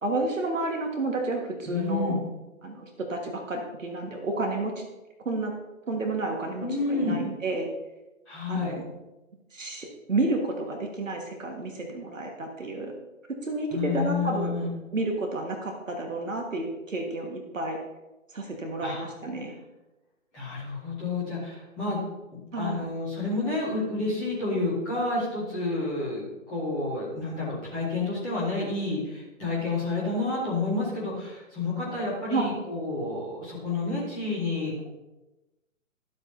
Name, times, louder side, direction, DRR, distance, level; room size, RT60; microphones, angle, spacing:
voice 1, 0.0-2.2 2.6-4.8 5.2-5.5 5.9-7.7 8.5-8.8 9.5-12.9 13.4-14.6 14.9-17.8 18.3-19.5 22.5-22.9 32.3-32.5, right 2 dB, 70° right, 2 dB, 1.7 m, -30 dB
voice 2, 1.7-2.2 6.6-7.2 8.3-8.7 13.7-14.7 18.8-19.0 20.3-22.0 22.3-34.7, left 3 dB, 5° left, -8 dB, 0.5 m, -30 dB
12.5 x 7.9 x 2.7 m, 1.0 s
figure-of-eight pair, 135°, 40 cm